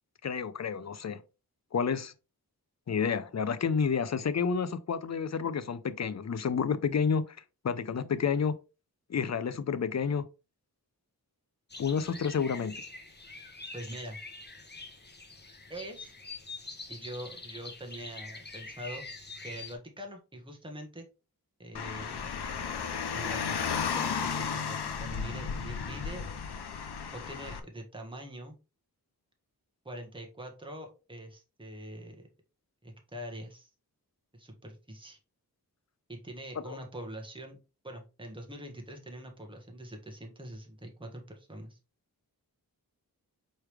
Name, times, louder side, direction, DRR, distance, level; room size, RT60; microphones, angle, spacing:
voice 1, 0.2-1.2 1.7-2.1 2.9-7.4 7.6-8.5 9.1-10.3 11.8-12.7 36.7-36.8, left 6 dB, 45° left, 0.5 m, -30 dB
sound 1, 11.7-19.7, left 3 dB, 25° left, 0.9 m, -45 dB
voice 2, 13.7-14.2 15.7-16.1 16.9-19.0 19.4-21.1 21.6-22.3 23.1-26.3 27.1-28.6 29.8-32.3 32.8-33.7 34.3-35.2 36.1-37.6 37.8-41.8, right 1 dB, 15° right, 1.2 m, -44 dB
Car, 21.7-27.6, left 6 dB, 90° left, 0.7 m, -34 dB
4.6 x 3.3 x 3.3 m
wide cardioid pair, 65°, 38 cm